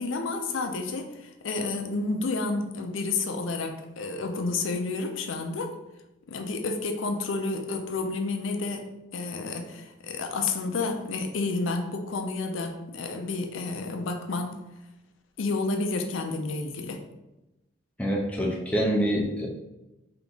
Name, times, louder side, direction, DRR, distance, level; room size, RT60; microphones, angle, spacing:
voice 1, 0.0-5.7 6.3-8.9 9.1-14.6 15.4-17.0, left 3 dB, 80° left, 4 dB, 0.5 m, -30 dB
voice 2, 18.0-19.5, equal, 5° left, -2 dB, 0.5 m, -26 dB
3.5 x 2.9 x 3.8 m, 0.98 s
head